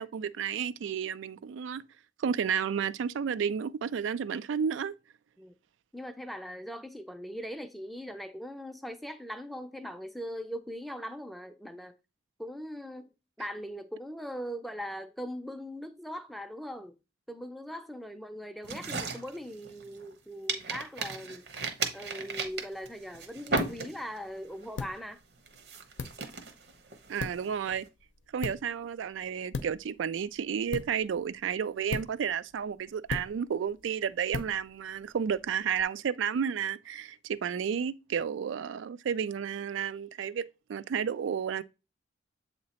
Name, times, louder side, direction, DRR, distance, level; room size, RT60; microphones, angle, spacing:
voice 1, 0.0-1.8 2.2-5.0 27.1-27.9 28.3-41.6, right 7 dB, 90° right, 0.3 m, -32 dB
voice 2, 5.9-11.9 12.4-16.9 17.3-21.4 21.9-25.2, equal, ahead, 0.4 m, -40 dB
sound 1, 18.6-20.1 20.5-24.3 24.6-25.0 25.5-27.8, right 3 dB, 60° right, 0.9 m, -35 dB
sound 2, 22.4-35.8, left 4 dB, 90° left, 0.6 m, -42 dB
7.6 x 2.9 x 4.2 m
head